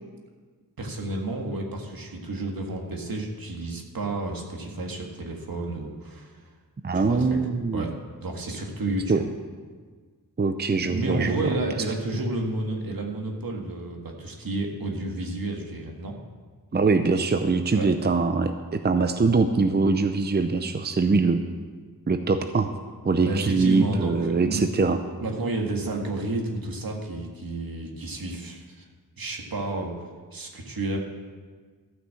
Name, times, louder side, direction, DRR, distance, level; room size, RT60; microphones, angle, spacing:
voice 1, 0.8-6.4 6.9-7.4 7.7-7.9 8.2-9.2 10.8-16.2 17.7-17.9 23.3-24.7 25.2-28.8 29.2-29.9 30.3-31.0, right 2 dB, 70° right, 1 dB, 1.8 m, -31 dB
voice 2, 6.8-7.8 9.1-9.2 10.4-11.5 16.7-21.4 22.1-22.7 23.0-25.0, right 4 dB, 30° right, 7 dB, 0.6 m, -23 dB
13.0 x 6.0 x 7.6 m, 1.5 s
wide cardioid pair, 80°, 37 cm